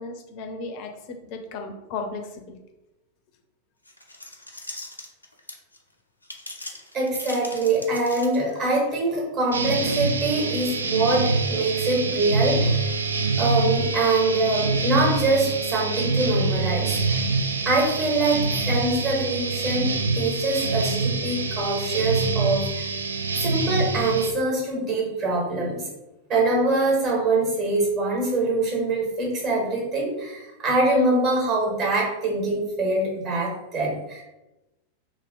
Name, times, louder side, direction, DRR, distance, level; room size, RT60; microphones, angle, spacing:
voice 1, 0.0-2.6, left 3 dB, 45° left, 4 dB, 0.6 m, -35 dB
sound 1, 3.8-5.8 6.2-8.7, left 2 dB, 85° left, 0.5 m, -39 dB
voice 2, 6.9-12.9 13.4-17.1 17.6-22.9 23.4-25.9 26.3-34.2, right 2 dB, 35° right, -2 dB, 1.4 m, -24 dB
sound 2, 9.5-24.3, right 3 dB, 75° right, 0.3 m, -25 dB
3.0 x 2.9 x 3.8 m, 1.0 s
figure-of-eight pair, 90°, 0 cm